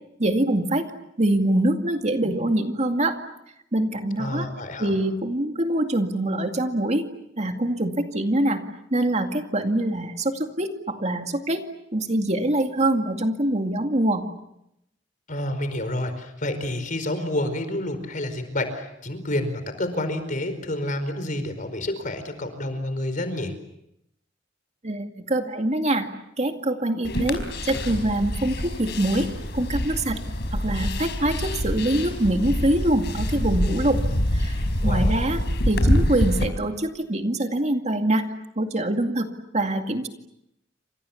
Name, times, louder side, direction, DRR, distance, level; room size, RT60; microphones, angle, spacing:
voice 1, 0.2-0.9 1.2-3.2 3.7-4.5 4.8-7.1 7.4-8.6 8.9-11.6 11.9-14.3 24.8-26.1 26.4-29.3 29.5-30.2 30.5-34.0 34.3-38.2 38.6-39.3 39.5-40.1, right 1 dB, 40° right, 5 dB, 2.3 m, -24 dB
voice 2, 4.2-5.0 15.3-23.5 34.8-35.3, left 1 dB, 45° left, 9 dB, 4.8 m, -29 dB
sound 1, 27.0-36.5, left 1 dB, 65° left, 4.7 m, -26 dB
29.5 x 27.0 x 7.2 m, 0.81 s
head